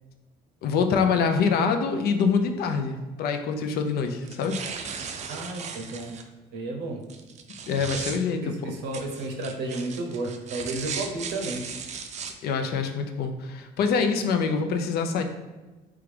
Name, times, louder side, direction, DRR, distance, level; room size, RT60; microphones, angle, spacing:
voice 1, 0.6-4.6 7.7-8.7 12.4-15.2, left 5 dB, 70° left, 6 dB, 0.5 m, -25 dB
sound 1, 4.2-6.2 7.1-8.2 8.9-12.3, right 6 dB, 45° right, 0.4 m, -36 dB
voice 2, 5.3-6.2 6.5-7.1 8.4-11.7, right 2 dB, 85° right, 2 dB, 0.7 m, -32 dB
3.7 x 3.4 x 3.3 m, 1.2 s
cardioid pair, 110°, 17 cm